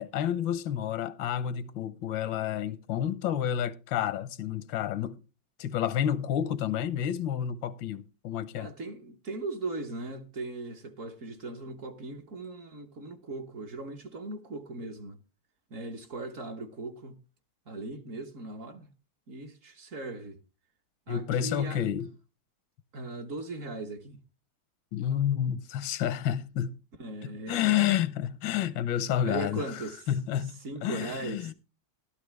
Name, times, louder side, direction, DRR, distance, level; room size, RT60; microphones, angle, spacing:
voice 1, 0.0-5.2 5.6-8.7 21.1-22.1 24.9-26.8 27.2-31.5, left 10 dB, 85° left, 1.5 m, -30 dB
voice 2, 8.5-15.2 15.7-17.2 17.7-18.9 19.3-20.4 21.1-21.8 22.9-24.2 27.0-27.9 29.2-30.0 30.6-31.5, right 3 dB, 50° right, 1.3 m, -38 dB
12.5 x 11.5 x 3.2 m
omnidirectional pair, 2.0 m